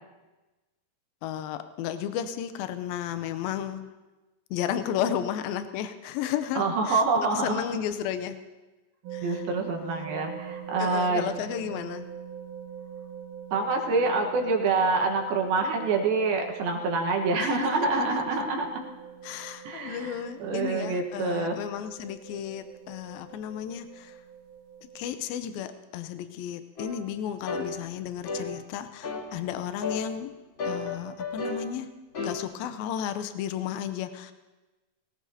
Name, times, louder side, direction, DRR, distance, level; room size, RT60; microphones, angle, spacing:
voice 1, 1.2-3.9 4.5-8.4 9.1-9.4 10.8-12.1 17.4-18.1 19.2-24.2 25.0-30.3 30.6-31.9 32.2-34.3, left 9 dB, 85° left, 10 dB, 2.5 m, -33 dB
voice 2, 6.6-7.6 9.2-11.3 13.5-18.9 19.6-21.6, right 3 dB, 80° right, 2 dB, 3.1 m, -26 dB
sound 1, 9.0-25.1, right 8 dB, 65° right, 2.4 m, -43 dB
sound 2, 26.8-26.9 27.5-27.7 28.3-28.5 29.0-29.3 29.8-30.1 30.6-31.6 32.1-32.4, left 3 dB, 40° left, 2.2 m, -32 dB
19.5 x 17.5 x 2.8 m, 1.1 s
omnidirectional pair, 4.3 m